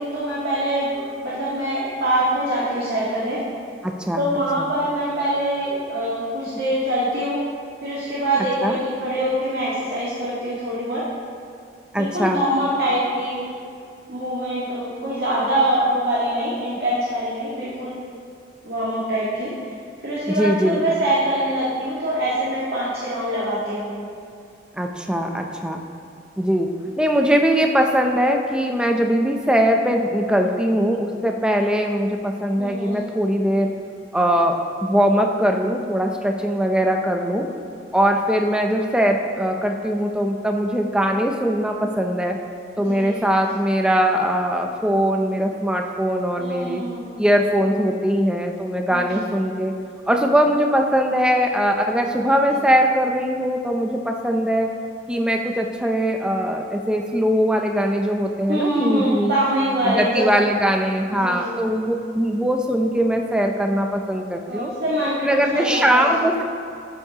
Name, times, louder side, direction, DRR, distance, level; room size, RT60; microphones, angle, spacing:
voice 1, 0.0-3.4 4.2-7.4 7.8-11.0 11.9-13.4 14.1-17.9 18.6-19.5 20.0-23.9 32.6-33.0 42.8-43.2 46.4-47.0 48.9-49.2 58.5-60.3 61.1-61.5 64.5-66.2, right 1 dB, 60° right, -8 dB, 1.7 m, -24 dB
voice 2, 3.8-4.2 4.6-4.7 8.6-8.8 11.9-12.4 20.3-20.8 24.8-25.8 26.4-26.7 27.0-33.7 34.1-37.5 37.9-42.4 42.8-46.8 47.2-49.7 50.1-54.7 55.1-59.3 59.8-64.7 65.2-66.4, equal, 5° right, 3 dB, 0.5 m, -21 dB
13.0 x 8.0 x 2.9 m, 2.3 s
head